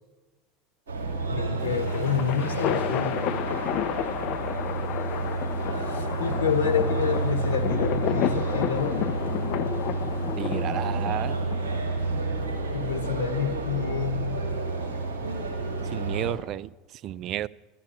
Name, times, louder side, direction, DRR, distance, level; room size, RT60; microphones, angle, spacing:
sound 1, 0.9-16.3, right 3 dB, 80° right, 2.5 m, -30 dB
voice 1, 1.3-3.3 5.9-9.0 12.7-14.8, left 8 dB, 85° left, 9 dB, 0.9 m, -29 dB
sound 2, 1.6-12.1, left 11 dB, 55° left, 0.5 m, -31 dB
voice 2, 10.4-11.4 15.9-16.7 17.0-17.5, right 12 dB, 50° right, 20 dB, 0.3 m, -31 dB
12.5 x 7.6 x 8.7 m, 1.2 s
hypercardioid pair, 80°, 0 cm